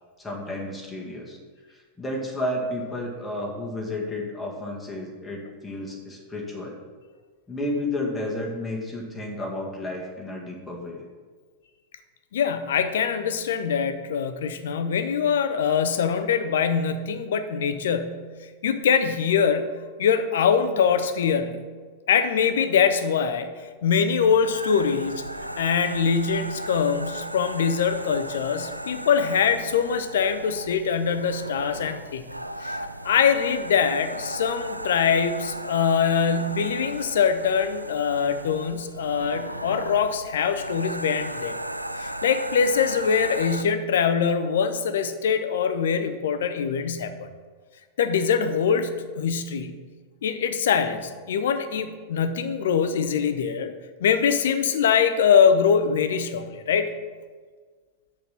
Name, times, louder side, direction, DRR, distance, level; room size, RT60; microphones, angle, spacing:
voice 1, 0.2-1.4 1.7-6.8 7.5-11.0, left 1 dB, 10° left, -3 dB, 1.8 m, -32 dB
voice 2, 12.3-18.3 18.6-19.7 20.0-21.6 22.1-25.3 25.6-32.2 32.6-41.6 42.0-47.3 48.0-49.8 50.2-53.7 54.0-56.9, left 6 dB, 60° left, 10 dB, 0.6 m, -23 dB
sound 1, 24.3-43.6, right 1 dB, 85° right, 0.3 m, -36 dB
6.5 x 6.2 x 5.8 m, 1.5 s
figure-of-eight pair, 90°, 0 cm